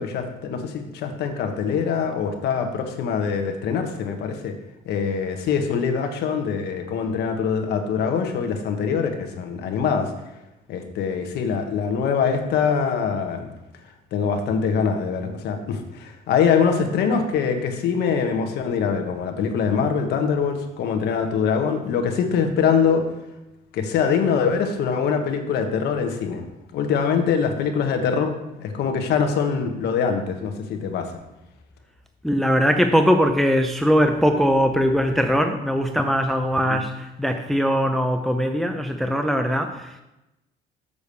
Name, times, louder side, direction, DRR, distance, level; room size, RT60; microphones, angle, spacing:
voice 1, 0.0-4.5 4.8-10.1 10.7-13.5 14.1-23.0 23.7-26.5 26.7-28.3 28.6-31.1 36.7-36.8, left 6 dB, 75° left, 5 dB, 1.3 m, -23 dB
voice 2, 32.2-40.0, equal, ahead, 5 dB, 0.6 m, -21 dB
6.9 x 5.0 x 6.9 m, 0.95 s
cardioid pair, 110°, 17 cm